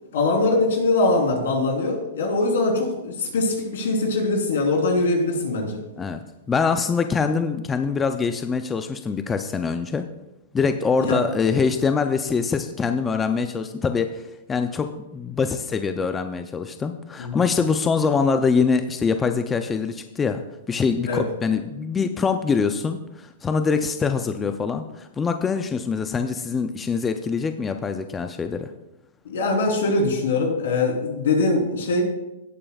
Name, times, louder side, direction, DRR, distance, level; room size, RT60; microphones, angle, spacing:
voice 1, 0.1-5.8 11.0-11.2 17.2-17.4 21.1-21.2 29.3-32.0, left 2 dB, 80° left, 1 dB, 3.5 m, -22 dB
voice 2, 6.5-10.1 10.5-20.4 20.7-28.7, left 5 dB, 15° left, 8 dB, 0.4 m, -24 dB
17.0 x 8.7 x 2.3 m, 0.96 s
hypercardioid pair, 155°, 0 cm